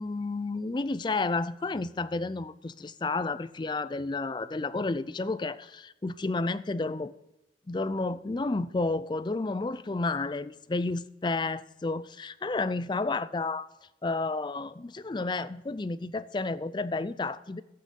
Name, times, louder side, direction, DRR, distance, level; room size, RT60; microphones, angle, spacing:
voice 1, 0.0-7.1 7.7-13.7 14.0-17.6, left 3 dB, 25° left, 0.4 m, -31 dB
12.0 x 8.7 x 5.4 m
head